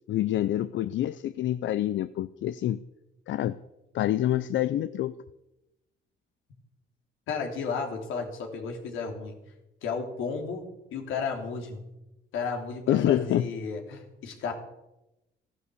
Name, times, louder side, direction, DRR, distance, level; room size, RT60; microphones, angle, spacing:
voice 1, 0.1-2.8 3.3-3.6 3.9-5.1 12.9-13.5, left 12 dB, 70° left, 14 dB, 0.6 m, -26 dB
voice 2, 7.3-9.4 9.8-11.8 12.3-14.5, left 5 dB, 85° left, 2 dB, 3.2 m, -33 dB
14.5 x 11.5 x 7.0 m, 0.94 s
cardioid pair, 90°, 20 cm